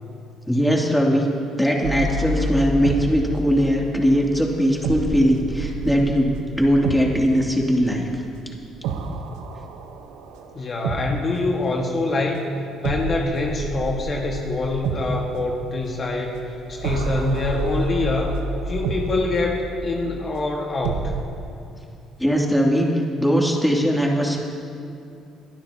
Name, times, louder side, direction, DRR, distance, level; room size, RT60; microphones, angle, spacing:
voice 1, 0.5-1.3 1.6-8.1 22.2-24.4, equal, 5° left, -2 dB, 2.7 m, -20 dB
sound 1, 1.8-11.6 12.8-21.2, right 3 dB, 80° right, 1.0 m, -30 dB
voice 2, 10.5-12.4 12.8-16.4 16.7-18.3 18.6-21.3, left 2 dB, 45° left, 0 dB, 1.6 m, -25 dB
24.0 x 12.0 x 2.9 m, 2.6 s
hypercardioid pair, 60°, 0 cm